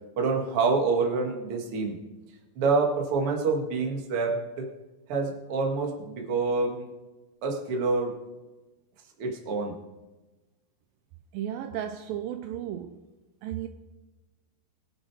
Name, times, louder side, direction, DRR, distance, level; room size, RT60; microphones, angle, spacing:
voice 1, 0.2-1.9 2.6-4.7 5.1-6.9 7.4-8.1 9.2-9.8, right 4 dB, 45° right, 1 dB, 2.0 m, -27 dB
voice 2, 11.3-13.0 13.4-13.7, right 10 dB, 85° right, 8 dB, 2.0 m, -34 dB
22.0 x 8.1 x 4.8 m, 1.1 s
omnidirectional pair, 4.7 m